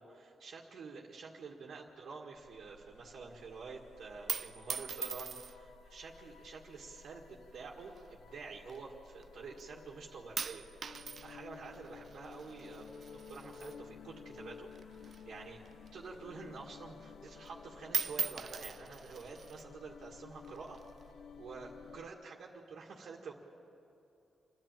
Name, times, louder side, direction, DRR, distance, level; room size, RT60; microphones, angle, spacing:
voice 1, 0.0-7.9 8.3-10.6 11.0-12.9 13.3-14.7 15.0-15.6 15.9-20.8 21.4-23.3, right 4 dB, 75° right, -3 dB, 2.0 m, -48 dB
sound 1, 2.4-22.1, left 6 dB, 80° left, 0.7 m, -54 dB
sound 2, 4.0-5.8 6.6-7.0 7.9-9.2 9.6-10.0 10.4-14.4 14.7-16.4 16.8-16.9 17.2-17.6 17.8-19.7 20.4-21.1, right 6 dB, 55° right, 0.6 m, -41 dB
28.0 x 10.5 x 9.1 m, 2.8 s
cardioid pair, 90°, 0 cm